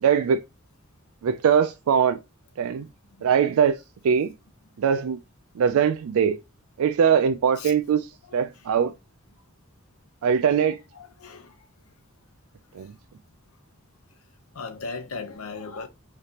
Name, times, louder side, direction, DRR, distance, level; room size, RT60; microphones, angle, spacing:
voice 1, 0.0-0.4 1.2-2.2 2.6-2.9 3.2-3.8 4.0-4.3 4.8-5.2 5.6-6.4 6.8-8.1 8.3-8.9 10.2-10.8 12.7-12.9, right 7 dB, 85° right, 0.4 m, -21 dB
voice 2, 8.3-8.7 10.9-11.6 14.5-15.9, left 4 dB, 85° left, 0.8 m, -37 dB
4.9 x 3.3 x 2.8 m
head